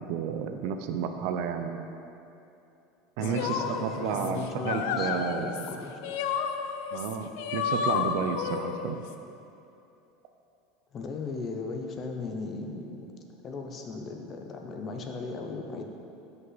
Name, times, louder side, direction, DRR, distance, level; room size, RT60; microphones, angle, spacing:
voice 1, 0.0-1.9 3.2-5.6 6.9-9.0, right 7 dB, 55° right, 7 dB, 0.6 m, -32 dB
sound 1, 3.2-9.1, left 7 dB, 65° left, 0.5 m, -32 dB
voice 2, 3.2-6.2 10.9-13.1 13.4-15.8, left 4 dB, 25° left, 3 dB, 0.7 m, -37 dB
14.0 x 5.5 x 4.0 m, 2.8 s
supercardioid pair, 175°, 0 cm